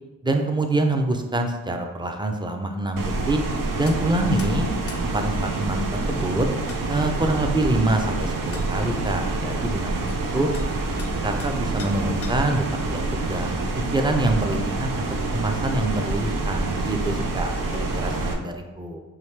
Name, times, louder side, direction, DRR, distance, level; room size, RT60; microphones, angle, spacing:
voice 1, 0.2-3.4 3.8-4.7 5.0-6.5 6.9-10.5 11.2-15.0 15.3-17.5 17.9-19.0, right 2 dB, 15° right, 4 dB, 0.6 m, -25 dB
sound 1, 3.0-18.3, right 2 dB, 65° right, 0.7 m, -27 dB
sound 2, 3.9-4.0 4.4-4.5 4.9-5.0 6.3-6.4 6.7-6.8 8.0-8.1 8.5-8.7 10.1-10.2 10.5-10.7 11.0-11.5 11.8-12.6, left 5 dB, 40° left, 0.5 m, -42 dB
voice 2, 4.2-5.1 5.4-5.6 10.2-10.6 10.9-11.2 17.4-18.4, left 2 dB, 90° left, 3 dB, 0.6 m, -40 dB
4.9 x 2.8 x 3.3 m, 1.2 s
cardioid pair, 45°, 35 cm